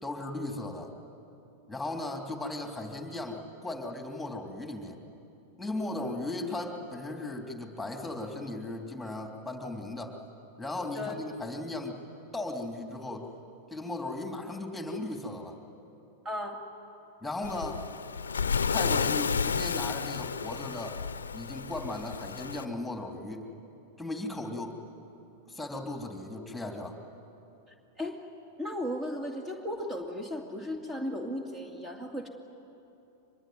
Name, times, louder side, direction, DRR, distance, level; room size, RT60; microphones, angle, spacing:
voice 1, 0.0-0.9 1.7-5.0 5.6-10.1 10.6-12.0 12.3-13.3 13.7-15.6 17.2-17.8 18.7-21.0 21.3-23.5 24.0-24.8 25.5-27.0, left 2 dB, 5° left, 3 dB, 3.3 m, -36 dB
voice 2, 16.2-16.6 28.0-28.3 28.6-32.3, left 1 dB, 20° right, 3 dB, 2.5 m, -35 dB
Waves surf, 17.4-22.6, left 6 dB, 90° left, 0.6 m, -31 dB
24.5 x 21.5 x 9.6 m, 2.8 s
hypercardioid pair, 105°, 0 cm